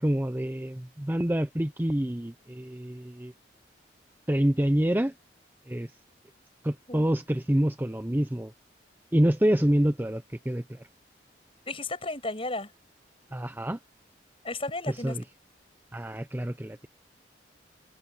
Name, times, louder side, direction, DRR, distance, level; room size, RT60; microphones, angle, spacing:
voice 1, 0.0-3.3 4.3-5.1 5.7-5.9 6.6-8.5 9.1-10.6 13.3-13.8 15.0-15.2 15.9-16.9, equal, 10° right, 0.6 m, -27 dB
voice 2, 11.7-12.7 14.4-15.2, left 2 dB, 30° left, 7.4 m, -33 dB
head